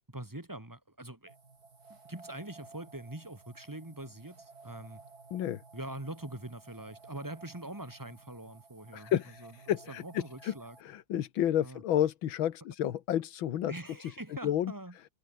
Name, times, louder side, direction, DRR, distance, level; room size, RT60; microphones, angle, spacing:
voice 1, 0.0-1.3 1.9-5.0 5.7-9.1 9.4-9.5 9.9-10.8 11.6-11.8 13.7-15.1, right 1 dB, 10° right, 2.5 m, -43 dB
sound 1, 1.3-10.8, right 4 dB, 50° right, 3.8 m, -55 dB
voice 2, 5.3-5.6 8.9-10.5 10.8-13.7 14.0-14.2 14.4-14.7, left 11 dB, 85° left, 1.9 m, -31 dB
omnidirectional pair, 2.1 m